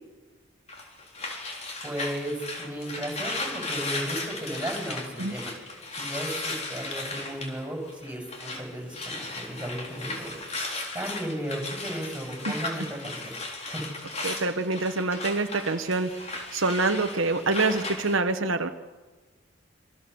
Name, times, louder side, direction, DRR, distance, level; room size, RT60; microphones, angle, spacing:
sound 1, 0.7-8.6 8.9-18.1, left 2 dB, 30° left, 3.9 m, -36 dB
voice 1, 1.8-5.5 6.0-10.3 10.9-13.3 13.6-13.8, equal, 5° right, 0 dB, 7.5 m, -35 dB
voice 2, 14.2-18.7, right 3 dB, 70° right, 6 dB, 1.2 m, -26 dB
27.0 x 24.0 x 7.1 m, 1.3 s
head